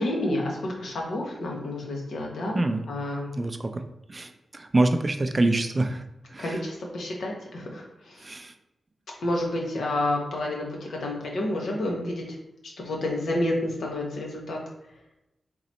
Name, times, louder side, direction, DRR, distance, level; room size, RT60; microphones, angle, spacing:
voice 1, 0.0-3.4 6.4-8.2 9.2-12.2 12.8-14.6, left 1 dB, 85° left, -1 dB, 1.1 m, -29 dB
voice 2, 3.4-3.8 4.1-6.0 6.3-6.6 8.2-8.5, right 2 dB, 35° right, 7 dB, 0.4 m, -25 dB
3.9 x 3.0 x 4.2 m, 0.88 s
cardioid pair, 75°, 0 cm